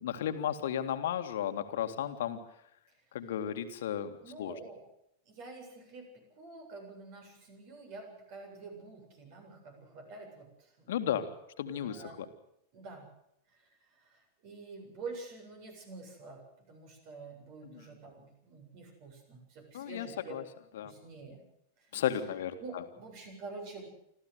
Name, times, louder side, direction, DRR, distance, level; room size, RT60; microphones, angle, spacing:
voice 1, 0.0-2.4 3.1-4.1 4.4-4.6 10.9-11.3 11.6-12.0 17.6-17.8 19.7-20.4 20.7-20.9 21.9-22.6, left 10 dB, 60° left, 8 dB, 2.1 m, -34 dB
voice 2, 4.2-4.8 5.3-11.2 11.8-12.2 12.7-13.1 13.5-16.4 16.7-20.4 20.8-21.4 21.8-22.0 22.6-23.9, right 3 dB, 45° right, 4 dB, 7.7 m, -48 dB
26.0 x 14.5 x 8.0 m, 0.76 s
figure-of-eight pair, 90°, 0 cm